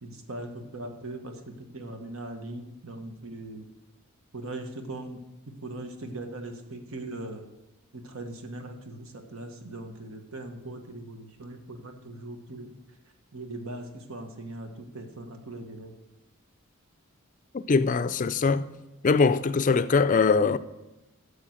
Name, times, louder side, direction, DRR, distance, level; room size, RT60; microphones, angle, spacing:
voice 1, 0.0-3.7 4.3-5.2 5.6-7.5 7.9-12.7 13.3-15.9, right 2 dB, 70° right, 1.3 m, -40 dB
voice 2, 17.5-18.7 19.0-20.6, left 4 dB, 35° left, 0.4 m, -22 dB
9.7 x 6.9 x 6.2 m
head